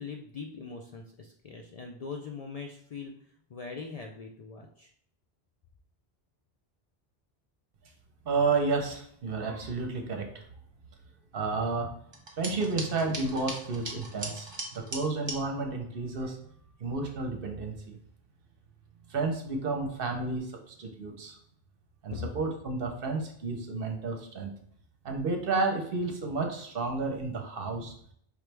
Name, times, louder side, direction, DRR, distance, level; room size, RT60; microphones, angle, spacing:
voice 1, 0.0-3.1 3.5-4.9 22.1-22.3, left 5 dB, 55° left, 1 dB, 0.4 m, -41 dB
voice 2, 8.3-10.4 11.3-11.9 12.4-16.4 16.8-18.0 19.1-21.4 22.0-24.5 25.0-27.9, right 3 dB, 65° right, 3 dB, 0.9 m, -31 dB
sound 1, 12.1-15.4, right 2 dB, 30° right, 0.8 m, -39 dB
5.0 x 3.1 x 3.3 m, 0.65 s
omnidirectional pair, 1.1 m